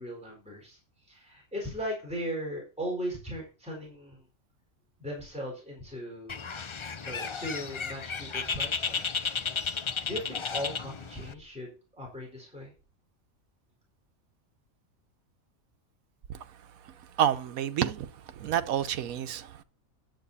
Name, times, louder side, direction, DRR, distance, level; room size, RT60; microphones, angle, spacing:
voice 1, 0.0-4.2 5.0-6.4 7.0-9.4 9.7-12.7, equal, 5° right, 4.3 m, -38 dB
Bird, 6.3-11.3, left 5 dB, 55° left, 0.3 m, -33 dB
voice 2, 17.2-18.1 18.4-19.6, right 10 dB, 85° right, 1.2 m, -28 dB
10.5 x 8.2 x 4.1 m
omnidirectional pair, 1.4 m